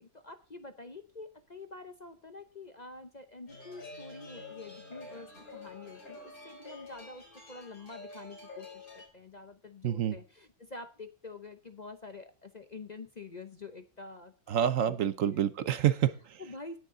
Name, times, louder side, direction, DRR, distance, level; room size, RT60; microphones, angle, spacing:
voice 1, 0.0-14.3 14.8-15.0 15.2-15.5 16.4-16.8, left 3 dB, 35° left, 8 dB, 0.7 m, -47 dB
sound 1, 3.5-9.1, left 2 dB, 70° left, 4.5 m, -48 dB
voice 2, 9.8-10.2 14.5-16.4, right 10 dB, 65° right, 14 dB, 1.0 m, -28 dB
18.0 x 6.7 x 3.7 m, 0.37 s
omnidirectional pair, 1.6 m